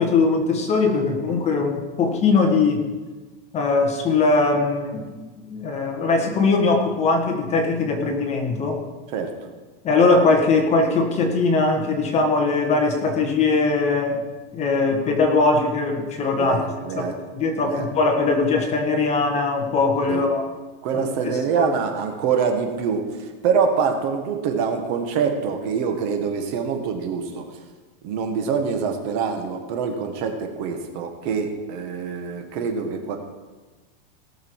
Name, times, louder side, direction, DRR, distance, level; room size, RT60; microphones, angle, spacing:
voice 1, 0.0-2.9 3.5-8.8 9.8-14.2 14.5-16.6 17.0-17.1 17.3-20.4 20.9-21.7, left 3 dB, 20° left, 3 dB, 1.4 m, -21 dB
voice 2, 16.4-17.2 17.6-17.9 20.1-20.3 20.8-27.4 28.0-33.2, right 6 dB, 45° right, 5 dB, 1.7 m, -25 dB
18.0 x 6.7 x 4.7 m, 1.3 s
supercardioid pair, 150°, 29 cm